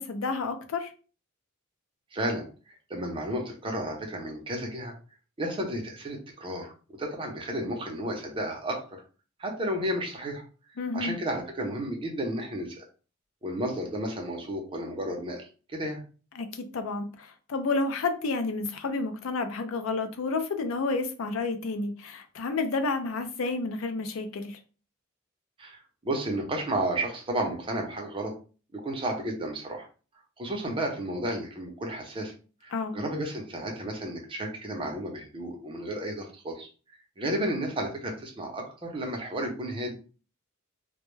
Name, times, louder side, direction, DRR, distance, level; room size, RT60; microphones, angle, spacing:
voice 1, 0.1-0.9 10.8-11.2 16.4-24.6 32.7-33.0, left 3 dB, 85° left, 0.4 m, -30 dB
voice 2, 2.1-2.5 2.9-4.9 5.4-6.7 7.0-9.0 9.4-10.4 10.9-12.8 13.4-16.0 25.6-28.3 28.7-29.9 30.4-32.3 32.6-36.7 37.2-39.9, right 1 dB, 25° right, 0.6 m, -32 dB
2.2 x 2.1 x 3.1 m
head